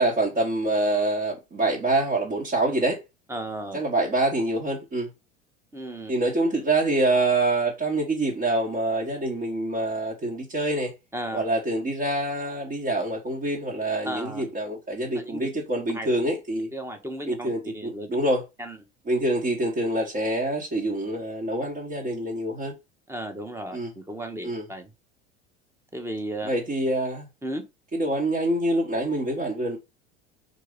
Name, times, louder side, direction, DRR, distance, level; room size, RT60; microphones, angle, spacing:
voice 1, 0.0-3.0 3.7-5.1 6.1-10.9 11.3-16.7 17.3-18.4 19.1-22.7 23.7-23.9 24.4-24.6 26.4-27.3 27.9-29.8, right 1 dB, 25° right, 1.6 m, -26 dB
voice 2, 3.3-3.8 5.7-6.1 11.1-11.4 14.0-14.4 15.1-15.5 15.9-16.1 16.7-18.1 18.6-18.8 23.1-24.9 25.9-26.5 27.4-27.6, right 1 dB, 10° right, 1.3 m, -34 dB
4.6 x 4.0 x 5.2 m
figure-of-eight pair, 75°, 34 cm